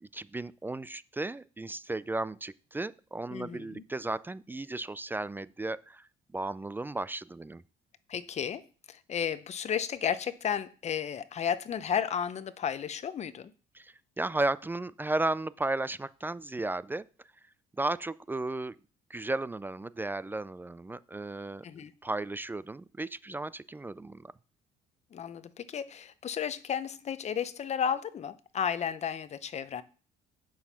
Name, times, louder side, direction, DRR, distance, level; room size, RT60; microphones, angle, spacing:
voice 1, 0.0-7.6 13.7-17.1 17.8-18.8 19.1-21.6 22.0-24.3, right 2 dB, 10° right, 18 dB, 0.3 m, -34 dB
voice 2, 3.3-3.8 8.1-8.6 8.9-13.5 21.6-21.9 25.1-29.8, left 8 dB, 40° left, 15 dB, 0.8 m, -33 dB
8.7 x 6.3 x 5.6 m, 0.38 s
cardioid pair, 110°, 17 cm